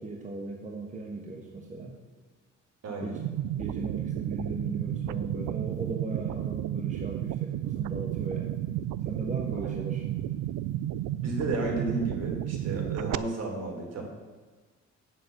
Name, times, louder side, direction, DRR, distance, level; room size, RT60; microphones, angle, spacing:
voice 1, 0.0-1.9 3.0-3.2 3.6-8.6 9.0-10.1, right 3 dB, 25° right, 1 dB, 1.4 m, -37 dB
sound 1, 3.2-13.2, right 12 dB, 75° right, 0.5 m, -32 dB
voice 2, 11.2-14.0, right 2 dB, 55° right, 0 dB, 3.5 m, -33 dB
8.8 x 7.6 x 7.0 m, 1.4 s
cardioid pair, 90°, 30 cm